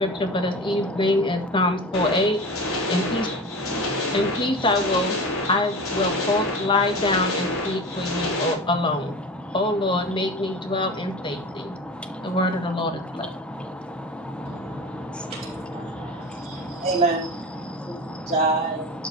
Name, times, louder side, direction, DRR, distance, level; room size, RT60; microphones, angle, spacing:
voice 1, 0.0-2.4 2.9-3.3 4.1-5.2 5.5-9.2 9.5-11.8 12.2-13.3, left 2 dB, 25° left, 6 dB, 1.5 m, -24 dB
sound 1, 1.9-8.5, left 2 dB, 80° left, 4.3 m, -28 dB
voice 2, 3.7-4.1 7.8-8.4 9.4-9.5 11.4-12.4 13.2-16.8 17.6-18.3, equal, 5° left, 8 dB, 0.9 m, -35 dB
voice 3, 14.4-18.9, right 3 dB, 30° right, -4 dB, 4.4 m, -28 dB
12.0 x 5.4 x 4.5 m, 0.39 s
head